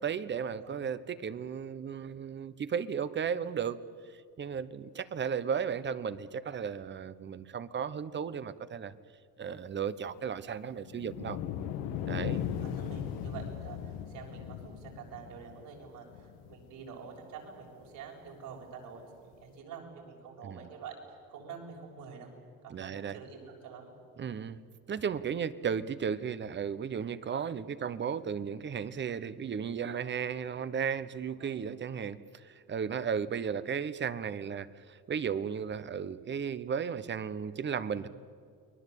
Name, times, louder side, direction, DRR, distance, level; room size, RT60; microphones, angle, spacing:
voice 1, 0.0-3.8 4.1-8.9 9.4-11.4 12.1-12.4 20.4-20.7 22.7-23.2 24.2-24.6 24.9-38.1, right 7 dB, 35° right, 14 dB, 1.0 m, -35 dB
sound 1, 10.8-17.2 17.8-17.9 19.3-19.4, left 9 dB, 90° left, 1.6 m, -38 dB
voice 2, 12.1-21.0 21.3-22.3 22.6-23.9 31.4-31.6 37.9-38.0, right 6 dB, 75° right, 0 dB, 7.1 m, -47 dB
29.5 x 21.0 x 8.4 m, 2.3 s
cardioid pair, 120°, 34 cm